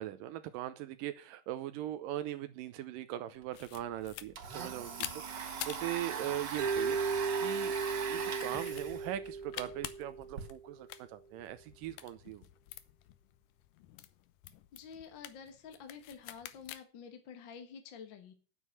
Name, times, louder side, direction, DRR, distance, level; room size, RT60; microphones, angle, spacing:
voice 1, 0.0-7.7 8.1-12.5, right 13 dB, 85° right, 2.4 m, -40 dB
Domestic sounds home sounds, 3.4-3.5 3.8-10.4, right 6 dB, 50° right, 1.4 m, -41 dB
sound 1, 3.5-16.8, left 13 dB, 80° left, 2.4 m, -49 dB
Mallet percussion, 6.6-10.7, right 5 dB, 65° right, 2.3 m, -36 dB
voice 2, 14.7-18.3, left 6 dB, 50° left, 1.6 m, -49 dB
9.3 x 8.2 x 6.9 m
omnidirectional pair, 3.9 m